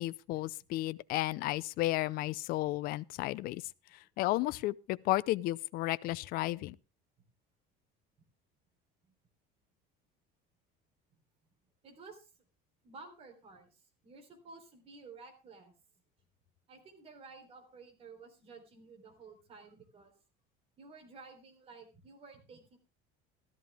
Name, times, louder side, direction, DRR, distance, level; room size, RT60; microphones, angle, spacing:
voice 1, 0.0-3.6 4.2-6.8, left 17 dB, 50° left, 0.5 m, -33 dB
voice 2, 11.8-12.4 12.8-15.7 16.7-20.1 20.8-22.8, right 4 dB, 30° right, 3.5 m, -53 dB
14.0 x 13.0 x 3.4 m
cardioid pair, 170°, 20 cm